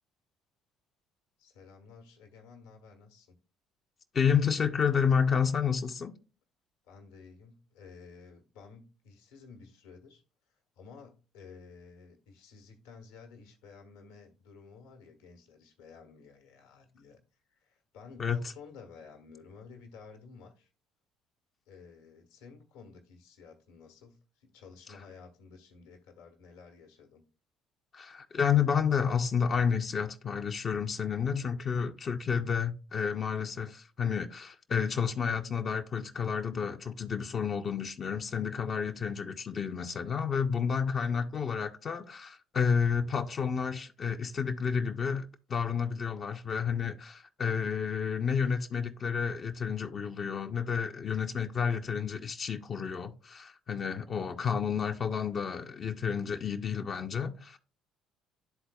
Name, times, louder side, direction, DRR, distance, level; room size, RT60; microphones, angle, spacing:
voice 1, 1.4-3.4 6.9-10.2 10.5-17.2 17.5-20.7 21.7-27.2, left 5 dB, 70° left, 1.2 m, -53 dB
voice 2, 4.1-6.2 18.2-18.5 27.9-57.6, left 6 dB, 45° left, 0.5 m, -30 dB
12.0 x 4.0 x 2.2 m
figure-of-eight pair, 55°, 0 cm